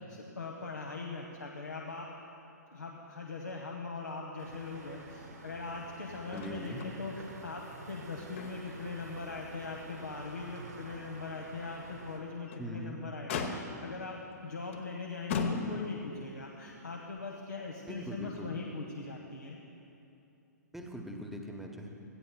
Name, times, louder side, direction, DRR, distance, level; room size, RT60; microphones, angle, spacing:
voice 1, 0.1-2.1 2.7-19.6, left 3 dB, 85° left, -1 dB, 1.0 m, -41 dB
sound 1, 4.4-12.2, right 2 dB, 75° right, 1.9 m, -49 dB
Motor vehicle (road), 6.3-7.0 7.3-7.4 7.9-8.8 9.3-9.4 9.9-10.0 12.3-12.7 13.3-14.0 14.7-14.9 15.3-16.1 17.2-17.3, left 5 dB, 45° left, 0.9 m, -36 dB
voice 2, 6.3-6.8 12.6-13.0 17.9-18.6 20.7-21.9, equal, 5° right, 1 dB, 0.9 m, -41 dB
17.0 x 14.0 x 2.2 m, 2.8 s
figure-of-eight pair, 120°, 9 cm